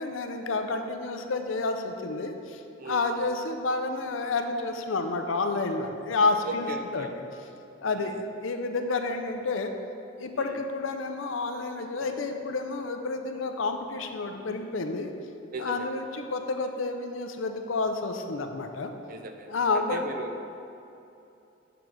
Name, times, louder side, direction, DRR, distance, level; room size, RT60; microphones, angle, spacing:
voice 1, 0.0-7.1 7.8-9.7 10.2-15.1 15.6-18.9 19.5-20.0, left 3 dB, 85° left, 6 dB, 0.5 m, -30 dB
voice 2, 2.8-3.2 6.4-7.1 7.8-8.2 10.3-10.6 12.0-12.1 15.5-16.2 19.1-20.5, right 2 dB, 45° right, 5 dB, 0.4 m, -38 dB
6.7 x 3.9 x 6.0 m, 2.8 s
head